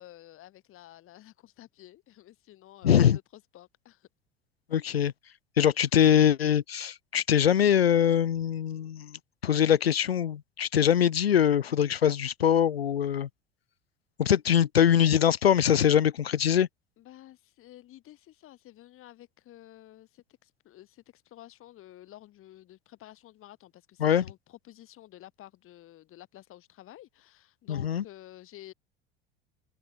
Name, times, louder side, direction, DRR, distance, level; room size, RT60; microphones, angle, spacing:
voice 1, 0.0-4.1 17.0-28.7, left 14 dB, 45° left, 4.9 m, -51 dB
voice 2, 2.8-3.2 4.7-5.1 5.6-13.3 14.2-16.7 24.0-24.2 27.7-28.0, left 9 dB, 80° left, 0.9 m, -23 dB
figure-of-eight pair, 70°, 30 cm